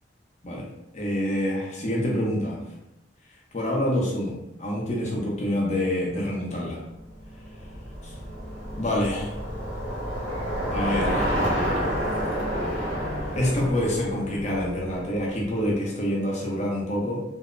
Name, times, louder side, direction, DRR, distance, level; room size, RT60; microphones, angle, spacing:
voice 1, 0.9-2.6 3.5-6.8 8.0-8.1 8.8-9.4 10.6-11.4 13.0-17.2, left 1 dB, 40° left, -3 dB, 0.6 m, -27 dB
Bicycle, 7.1-15.4, equal, 85° right, 1.2 m, -29 dB
2.6 x 2.0 x 2.4 m, 0.88 s
head